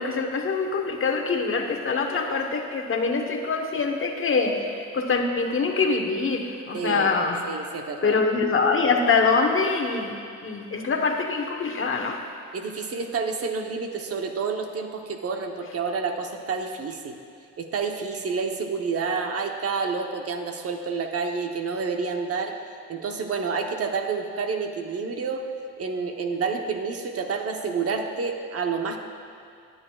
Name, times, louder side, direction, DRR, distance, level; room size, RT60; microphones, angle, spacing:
voice 1, 0.0-7.4 8.0-10.1 10.4-12.2, left 4 dB, 45° left, 3 dB, 1.1 m, -24 dB
voice 2, 6.7-7.1 7.4-8.2 12.5-17.2 17.6-22.5 22.9-25.4 25.8-29.0, right 5 dB, 50° right, 4 dB, 0.9 m, -29 dB
17.5 x 8.9 x 2.4 m, 2.5 s
cardioid pair, 90°, 30 cm